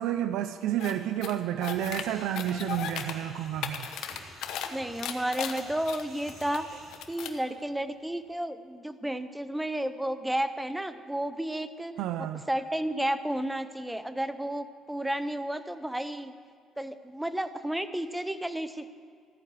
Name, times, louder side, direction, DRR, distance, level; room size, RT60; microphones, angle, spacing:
voice 1, 0.0-3.9 12.0-12.4, right 11 dB, 85° right, 0.5 m, -30 dB
sound 1, 0.8-0.9 1.2-2.0 2.3-3.1 3.5-4.7 5.0-6.6 6.9-7.4, left 9 dB, 70° left, 1.0 m, -36 dB
sound 2, 1.7-6.9, right 1 dB, 45° right, 4.1 m, -49 dB
voice 2, 4.7-6.8 7.1-11.9 12.2-16.3 16.8-18.9, right 1 dB, 5° right, 0.5 m, -32 dB
14.5 x 9.6 x 7.7 m
cardioid pair, 175°, 0 cm